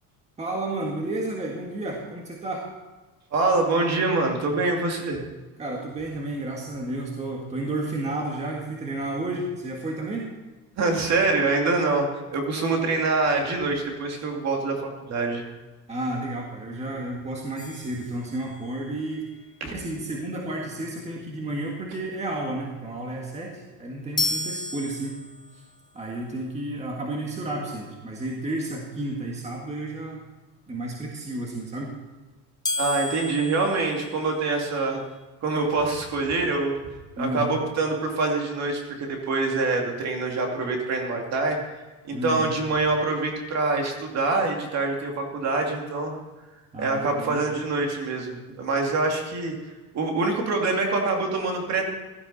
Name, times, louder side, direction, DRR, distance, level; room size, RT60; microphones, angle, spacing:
voice 1, 0.4-2.7 5.6-10.3 15.9-19.3 19.6-25.2 25.5-25.6 25.9-30.2 30.7-31.9 37.2-37.6 42.1-42.5 46.7-47.4, right 2 dB, 15° right, -1 dB, 1.7 m, -31 dB
voice 2, 3.3-5.2 10.8-15.4 32.8-35.0 35.4-36.8 37.2-41.6 42.0-46.2 46.8-51.8, right 3 dB, 40° right, 2 dB, 2.6 m, -25 dB
sound 1, 17.6-18.9 24.2-25.7 32.6-34.8, left 2 dB, 10° left, 0.5 m, -32 dB
16.5 x 12.5 x 4.1 m, 1.2 s
cardioid pair, 155°, 41 cm